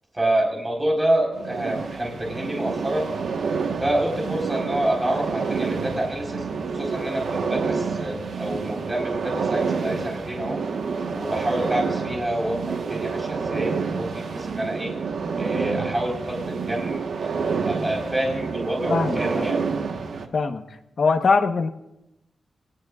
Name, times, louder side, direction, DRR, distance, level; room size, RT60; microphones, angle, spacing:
voice 1, 0.1-3.1 3.8-6.4 6.7-10.6 11.1-14.9 15.4-17.3 17.7-19.6, right 1 dB, 15° right, -1 dB, 4.5 m, -27 dB
sound 1, 1.3-20.3, right 5 dB, 80° right, 1.4 m, -28 dB
voice 2, 18.9-19.5 20.3-20.6 21.0-21.7, left 4 dB, 60° left, 5 dB, 1.2 m, -22 dB
28.5 x 19.0 x 2.5 m, 0.93 s
wide cardioid pair, 115°, 0 cm